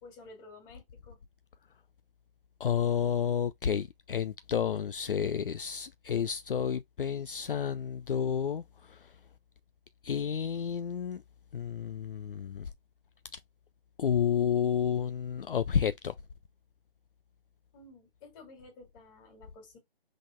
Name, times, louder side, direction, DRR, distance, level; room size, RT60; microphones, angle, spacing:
voice 1, 0.0-1.2 17.7-19.8, left 3 dB, 20° left, 2.2 m, -52 dB
voice 2, 2.6-9.1 10.0-11.2 11.5-12.7 13.3-13.4 14.0-16.1, left 8 dB, 60° left, 0.4 m, -31 dB
5.5 x 3.8 x 2.5 m
figure-of-eight pair, 145°, 31 cm